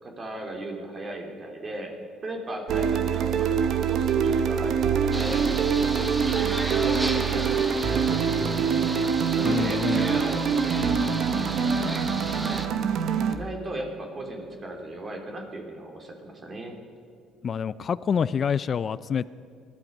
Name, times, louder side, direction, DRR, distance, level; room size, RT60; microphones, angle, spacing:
voice 1, 0.0-1.9 2.2-5.4 5.8-10.7 12.4-12.7 13.3-16.7, right 1 dB, 35° right, 2 dB, 3.0 m, -36 dB
sound 1, 2.7-13.4, right 7 dB, 65° right, 1.1 m, -25 dB
sound 2, 5.1-12.7, right 1 dB, 15° right, 1.5 m, -34 dB
voice 2, 9.4-10.1 17.4-19.2, left 7 dB, 45° left, 16 dB, 0.4 m, -27 dB
20.5 x 12.0 x 5.4 m, 2.5 s
cardioid pair, 90°, 0 cm